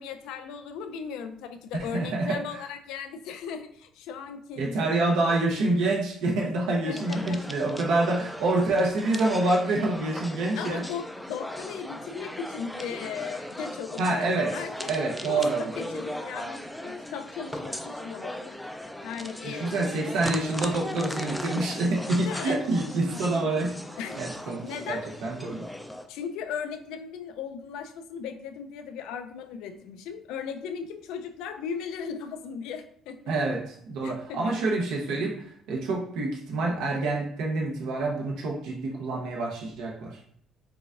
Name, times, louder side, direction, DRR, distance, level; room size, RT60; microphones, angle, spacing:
voice 1, 0.0-5.1 6.9-7.6 10.5-14.9 15.3-18.5 19.0-19.8 22.2-22.6 23.1-23.2 24.0-24.2 24.6-25.1 26.1-33.2 34.0-34.4, left 7 dB, 85° left, 8 dB, 0.5 m, -37 dB
voice 2, 1.7-2.4 4.6-10.9 14.0-14.5 14.9-15.7 19.4-23.8 24.2-25.6 33.3-35.4 35.7-40.2, right 2 dB, 80° right, -1 dB, 0.8 m, -27 dB
sound 1, 7.0-26.1, left 1 dB, 5° left, 0.4 m, -38 dB
4.8 x 3.5 x 2.5 m, 0.66 s
cardioid pair, 130°, 0 cm